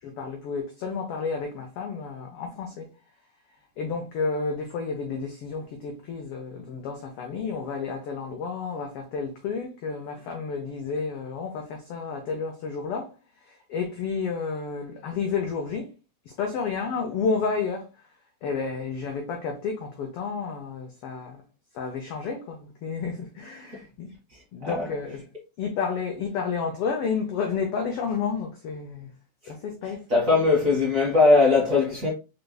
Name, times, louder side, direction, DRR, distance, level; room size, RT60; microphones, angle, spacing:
voice 1, 0.0-2.9 3.8-13.1 13.4-15.9 16.3-18.1 18.4-21.4 21.7-24.1 24.5-25.3 25.6-29.1 29.5-30.1, left 5 dB, 80° left, 1.3 m, -31 dB
voice 2, 24.3-24.9 30.1-32.1, left 3 dB, 40° right, 1.3 m, -20 dB
5.0 x 3.3 x 2.2 m
omnidirectional pair, 3.4 m